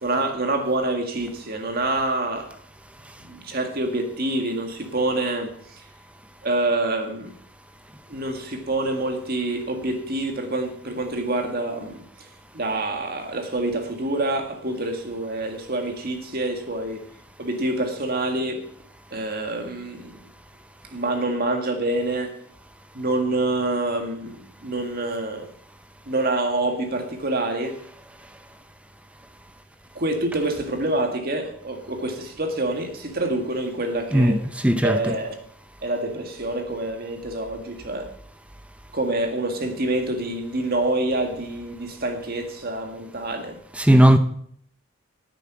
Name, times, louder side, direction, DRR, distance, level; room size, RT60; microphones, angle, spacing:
voice 1, 0.0-2.5 3.2-5.9 6.4-7.3 8.1-17.1 17.4-18.7 19.1-20.1 20.9-22.4 22.9-25.5 26.1-27.8 30.0-34.4 34.8-35.3 35.8-38.1 38.9-43.6, right 2 dB, 45° right, 1.8 m, -26 dB
voice 2, 34.1-35.2 43.7-44.2, equal, 5° right, 0.6 m, -17 dB
10.0 x 9.1 x 5.9 m
head